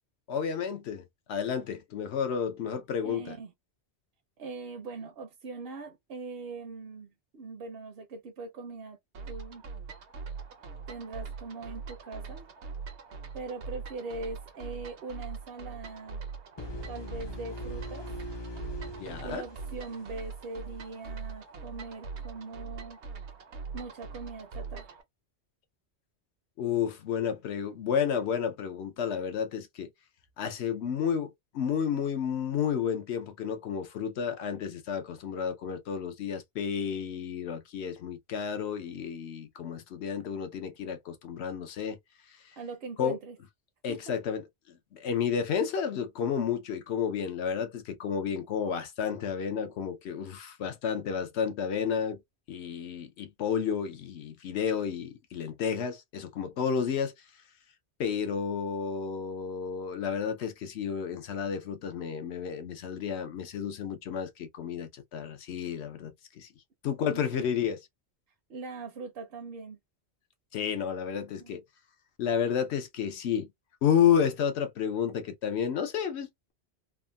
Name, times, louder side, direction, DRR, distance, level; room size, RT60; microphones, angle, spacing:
voice 1, 0.3-3.4 19.0-19.4 26.6-29.9 30.4-42.0 43.0-43.2 43.8-44.4 44.7-52.2 52.5-57.1 58.0-66.5 66.8-67.8 70.5-71.6 72.2-73.5 73.8-76.5, left 7 dB, 80° left, 0.9 m, -31 dB
voice 2, 3.0-3.5 4.4-9.0 9.3-9.6 10.9-12.5 13.3-16.2 16.9-18.1 19.2-23.0 23.7-25.0 42.6-43.4 43.9-44.1 67.0-67.7 68.5-69.8 71.4-71.6, right 3 dB, 65° right, 0.8 m, -41 dB
sound 1, 9.1-25.0, right 5 dB, 80° right, 1.1 m, -42 dB
sound 2, 16.6-20.4, left 1 dB, 45° left, 0.3 m, -41 dB
3.4 x 2.1 x 2.2 m
omnidirectional pair, 1.1 m